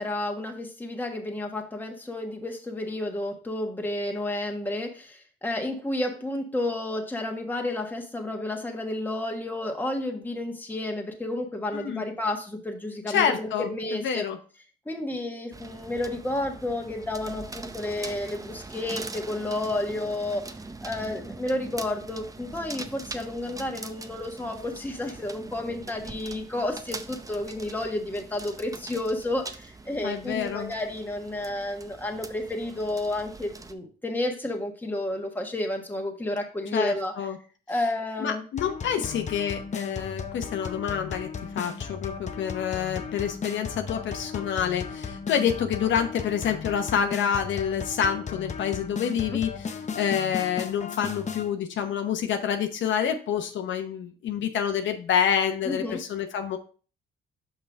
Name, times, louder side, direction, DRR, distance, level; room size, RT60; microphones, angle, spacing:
voice 1, 0.0-14.2 14.8-20.5 20.8-37.1 37.7-38.4 39.0-39.1 49.3-49.4 55.7-56.0, left 1 dB, 10° left, 2 dB, 1.4 m, -31 dB
voice 2, 11.7-12.0 13.1-14.4 30.0-30.7 36.7-37.4 38.2-41.3 41.5-56.6, left 8 dB, 70° left, 6 dB, 0.8 m, -27 dB
sound 1, 15.5-33.7, right 3 dB, 15° right, 0.6 m, -42 dB
sound 2, 38.6-51.5, left 5 dB, 35° left, 0.7 m, -36 dB
5.8 x 5.5 x 3.4 m, 0.38 s
cardioid pair, 90°, 20 cm